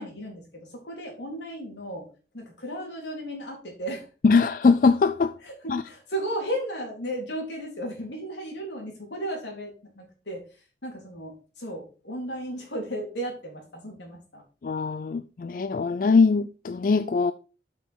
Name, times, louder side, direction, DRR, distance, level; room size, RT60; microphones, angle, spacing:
voice 1, 0.0-2.1 2.3-4.1 5.4-14.4, right 1 dB, 85° left, 3.7 m, -35 dB
voice 2, 4.2-5.3 5.7-5.8 14.6-17.3, left 4 dB, 50° left, 0.4 m, -21 dB
8.1 x 6.0 x 4.6 m
head